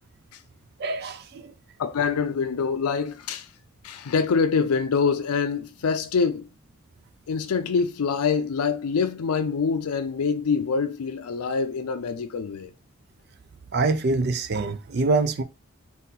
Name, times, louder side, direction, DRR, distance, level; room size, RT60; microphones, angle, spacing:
voice 1, 0.8-1.4 13.7-15.4, right 3 dB, 45° right, 0.4 m, -24 dB
voice 2, 1.8-3.5 3.8-6.5 7.3-12.7, left 5 dB, 90° left, 0.4 m, -25 dB
4.0 x 2.7 x 3.8 m
head